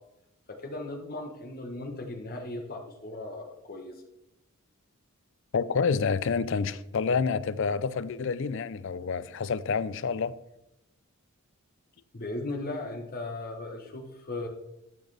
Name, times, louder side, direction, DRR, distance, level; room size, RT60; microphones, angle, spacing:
voice 1, 0.6-3.9 12.1-14.5, left 2 dB, 40° left, 1.1 m, -37 dB
voice 2, 5.5-10.3, left 5 dB, 55° left, 0.4 m, -28 dB
12.0 x 6.4 x 3.3 m
head